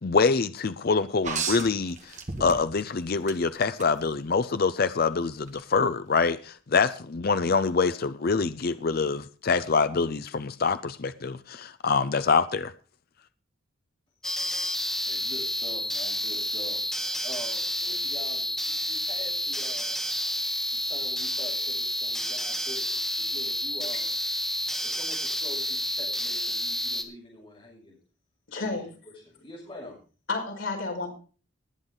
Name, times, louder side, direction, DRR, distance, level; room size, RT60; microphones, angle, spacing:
voice 1, 0.0-2.1 2.4-12.7, left 4 dB, 50° left, 0.5 m, -25 dB
sound 1, 1.2-2.9 3.3-3.9 5.5-5.6, right 5 dB, 35° right, 2.0 m, -33 dB
sound 2, 14.2-27.0, left 1 dB, ahead, 1.3 m, -30 dB
voice 2, 15.0-16.8 17.2-20.0 20.4-20.5 20.7-24.1 24.8-28.0 28.6-28.9 29.2-30.0, left 2 dB, 25° left, 6.7 m, -45 dB
voice 3, 28.5-28.8 30.3-31.1, left 3 dB, 80° left, 5.3 m, -30 dB
20.0 x 8.1 x 3.9 m
head